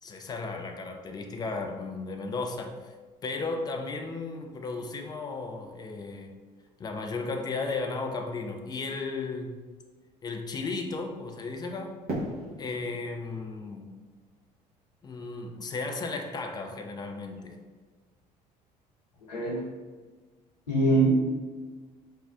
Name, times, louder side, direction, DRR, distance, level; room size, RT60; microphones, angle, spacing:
voice 1, 0.0-2.9 3.2-6.3 6.8-9.6 10.2-11.9 12.6-13.9 15.0-17.6, left 3 dB, 20° left, 4 dB, 0.3 m, -35 dB
Fireworks, 12.1-15.1, right 1 dB, 45° right, 1.0 m, -39 dB
voice 2, 19.3-19.6 20.7-21.1, right 2 dB, 75° left, -5 dB, 0.7 m, -23 dB
3.5 x 2.1 x 2.3 m, 1.4 s
figure-of-eight pair, 55°, 21 cm